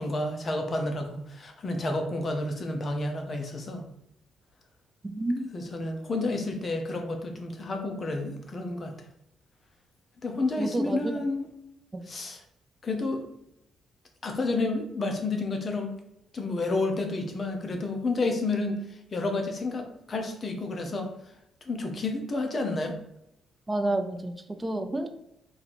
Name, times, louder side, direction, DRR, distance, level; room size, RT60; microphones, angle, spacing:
voice 1, 0.0-3.8 5.5-8.9 10.2-11.5 12.1-12.4 12.8-13.2 14.2-16.0 16.3-18.8 19.1-21.1 21.7-22.9, left 2 dB, 35° left, 4 dB, 0.9 m, -30 dB
voice 2, 5.0-5.4 10.6-11.1 11.9-12.0 23.7-25.1, right 2 dB, 20° right, 7 dB, 0.6 m, -29 dB
4.0 x 2.8 x 4.2 m, 0.82 s
cardioid pair, 90°, 0 cm